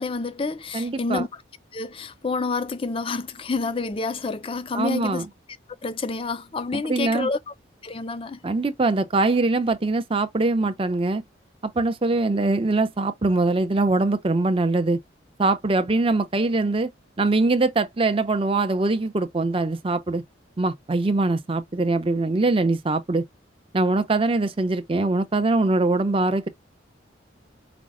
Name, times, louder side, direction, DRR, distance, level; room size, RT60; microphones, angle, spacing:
voice 1, 0.0-1.4 1.7-5.3 5.8-7.5 7.8-8.4, left 4 dB, 30° left, 0.4 m, -28 dB
voice 2, 0.7-1.2 4.7-5.3 6.7-7.3 8.4-11.2 11.8-15.0 15.4-16.9 17.2-20.2 20.6-23.2 23.7-26.5, right 2 dB, 30° right, 0.5 m, -22 dB
5.1 x 2.0 x 3.5 m
head